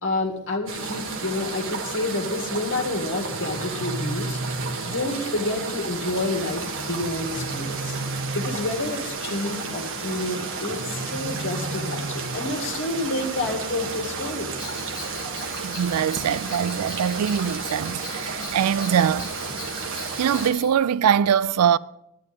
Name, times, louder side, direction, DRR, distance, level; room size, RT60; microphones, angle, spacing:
voice 1, 0.0-4.4 4.8-8.0 8.3-14.5, left 2 dB, 60° left, 1.9 m, -29 dB
sound 1, 0.7-20.5, right 4 dB, 60° right, 1.5 m, -32 dB
sound 2, 3.3-5.3 7.0-9.0 10.7-12.7, right 1 dB, 40° right, 0.8 m, -34 dB
Bell, 14.6-20.7, left 4 dB, 15° left, 1.3 m, -41 dB
voice 2, 15.6-19.3 19.9-21.8, right 8 dB, 85° right, 0.4 m, -23 dB
10.5 x 10.5 x 5.3 m
head